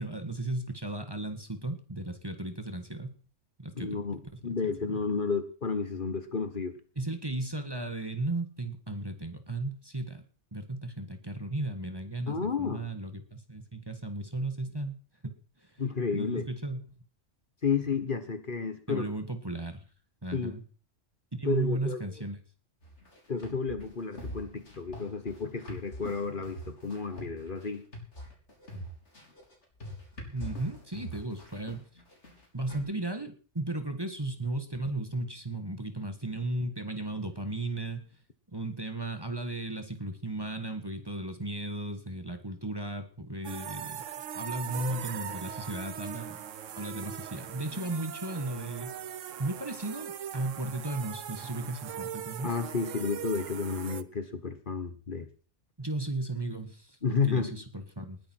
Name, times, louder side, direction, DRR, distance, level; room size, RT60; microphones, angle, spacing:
voice 1, 0.0-3.2 3.6-3.9 4.3-4.6 4.9-5.0 6.9-10.2 10.5-14.9 15.2-15.8 16.1-16.8 18.9-19.8 20.2-20.6 21.4-22.4 30.3-31.8 32.5-38.1 38.5-44.0 44.3-46.4 46.8-49.1 49.4-52.5 55.8-58.2, right 2 dB, 20° right, 7 dB, 1.6 m, -35 dB
voice 2, 3.7-6.8 12.3-12.9 15.8-16.5 17.6-19.1 20.3-20.5 21.4-22.0 23.3-27.8 52.4-55.3 57.0-57.6, left 5 dB, 45° left, 10 dB, 1.4 m, -31 dB
sound 1, 22.8-32.8, equal, 65° left, 4.3 m, -44 dB
sound 2, 43.4-54.0, right 9 dB, 85° right, 1.2 m, -40 dB
20.5 x 10.0 x 4.6 m, 0.39 s
omnidirectional pair, 1.3 m